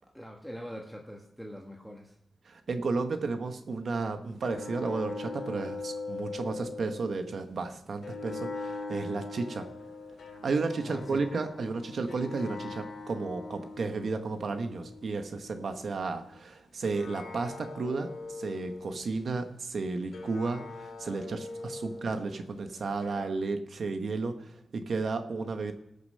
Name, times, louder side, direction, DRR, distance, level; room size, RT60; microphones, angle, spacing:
voice 1, 0.0-2.1 10.8-11.2, equal, ahead, 0 dB, 1.1 m, -43 dB
voice 2, 2.5-9.7 10.4-18.1 18.4-25.7, right 3 dB, 60° right, 7 dB, 1.0 m, -33 dB
sound 1, 4.4-7.4 8.0-16.4 16.8-19.3 20.1-23.3, left 3 dB, 80° left, 2.0 m, -42 dB
19.0 x 6.7 x 6.5 m, 0.83 s
wide cardioid pair, 145°, 0 cm